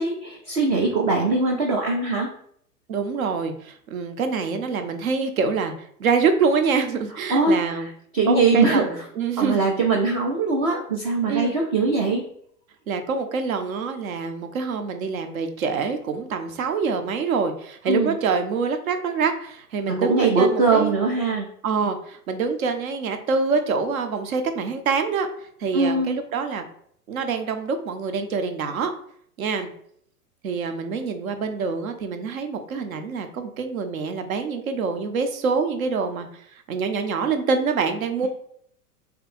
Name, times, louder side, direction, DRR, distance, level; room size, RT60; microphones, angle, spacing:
voice 1, 0.0-2.3 7.3-7.6 8.1-9.0 9.4-12.2 17.9-18.2 19.9-21.5 25.7-26.2, right 3 dB, 25° right, -1 dB, 0.3 m, -21 dB
voice 2, 2.9-7.9 8.3-9.6 11.3-11.6 12.9-20.9 21.6-26.6 27.1-28.9 29.4-29.7 30.4-36.4 36.7-38.3, right 5 dB, 60° right, 7 dB, 0.8 m, -25 dB
3.0 x 2.8 x 4.2 m, 0.65 s
figure-of-eight pair, 100°, 47 cm